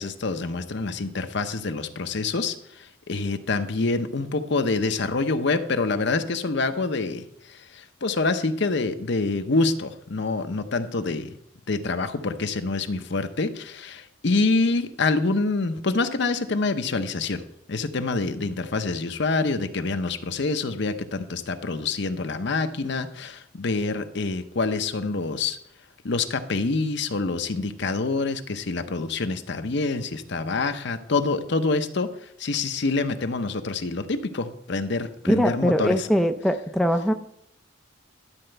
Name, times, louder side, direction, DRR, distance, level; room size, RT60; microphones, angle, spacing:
voice 1, 0.0-11.3 11.7-17.4 17.7-25.6 26.0-36.1, left 3 dB, 60° left, 9 dB, 0.7 m, -26 dB
voice 2, 35.3-37.1, equal, ahead, 6 dB, 0.5 m, -22 dB
11.5 x 4.4 x 7.8 m, 0.71 s
head